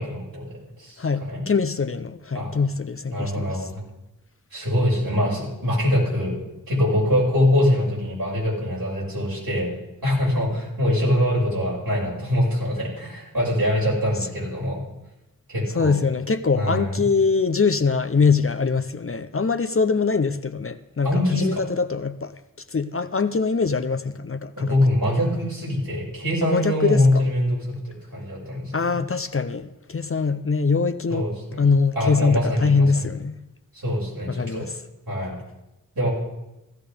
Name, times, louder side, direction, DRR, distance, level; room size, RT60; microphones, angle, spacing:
voice 1, 0.0-1.4 2.3-2.5 3.1-3.8 4.5-6.4 6.7-9.7 10.0-14.8 15.5-16.0 16.5-17.0 21.0-21.6 24.6-29.0 31.1-33.1 33.7-34.7 35.1-35.3 35.9-36.1, left 1 dB, 75° right, 6.2 m, -23 dB
voice 2, 1.0-3.7 15.7-22.3 22.7-24.7 26.4-27.2 28.7-31.3 31.6-33.4 34.3-34.7, left 4 dB, 40° left, 0.6 m, -23 dB
15.5 x 14.0 x 3.5 m
wide cardioid pair, 45°, 35 cm